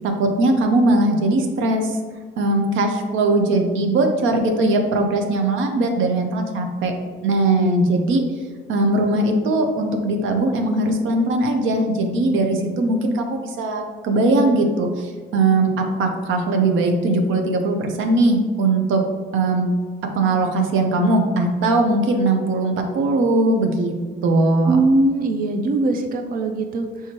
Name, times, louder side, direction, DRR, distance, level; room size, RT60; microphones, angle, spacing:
voice 1, 0.0-2.0 2.4-6.9 7.2-8.2 8.7-19.0 19.3-19.7 20.1-23.9 24.2-24.8, right 2 dB, 85° right, 4 dB, 0.6 m, -20 dB
voice 2, 24.7-27.1, right 2 dB, 45° right, 6 dB, 0.4 m, -21 dB
4.4 x 3.5 x 2.8 m, 1.6 s
cardioid pair, 90°, 20 cm